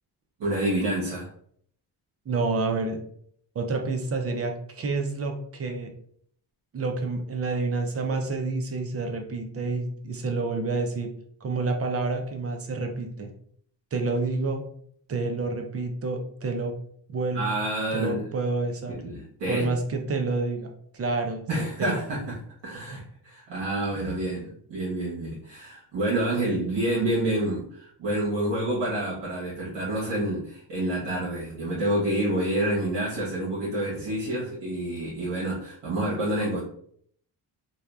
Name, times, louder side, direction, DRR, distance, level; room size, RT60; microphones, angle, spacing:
voice 1, 0.4-1.3 17.3-18.2 18.9-19.7 21.5-36.6, right 1 dB, 70° right, -7 dB, 1.0 m, -28 dB
voice 2, 2.3-3.0 3.6-5.9 6.7-11.1 11.4-13.3 13.9-14.6 15.1-16.7 17.1-17.5 17.9-18.9 19.5-20.7 20.9-21.9, right 3 dB, 35° right, 4 dB, 0.4 m, -28 dB
2.7 x 2.2 x 2.2 m, 0.63 s
cardioid pair, 100°, 44 cm